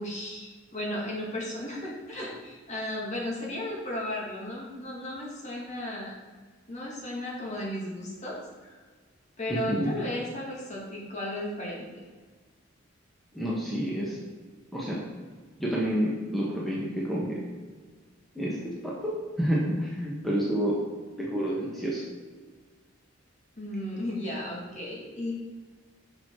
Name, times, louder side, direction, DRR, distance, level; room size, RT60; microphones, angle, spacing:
voice 1, 0.0-6.1 6.7-8.7 9.4-11.9 23.6-25.3, left 1 dB, 40° left, -3 dB, 2.2 m, -35 dB
voice 2, 9.5-9.9 13.3-14.2 14.7-15.0 15.6-17.4 18.3-20.8 21.2-22.0, equal, ahead, -5 dB, 1.3 m, -29 dB
7.1 x 6.4 x 4.7 m, 1.4 s
head